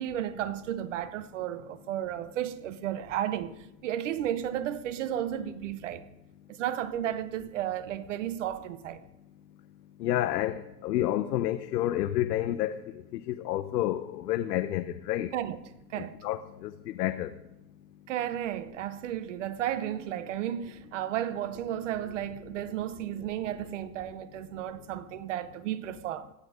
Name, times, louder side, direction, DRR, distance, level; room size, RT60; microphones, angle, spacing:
voice 1, 0.0-3.6 3.8-6.0 6.5-9.0 15.3-15.6 15.9-16.2 18.1-26.3, right 11 dB, 50° right, 0.8 m, -33 dB
voice 2, 10.0-12.8 13.3-15.3 16.2-16.7 17.0-17.3, left 13 dB, 75° left, 0.9 m, -29 dB
16.5 x 11.5 x 5.1 m
supercardioid pair, 175°, 49 cm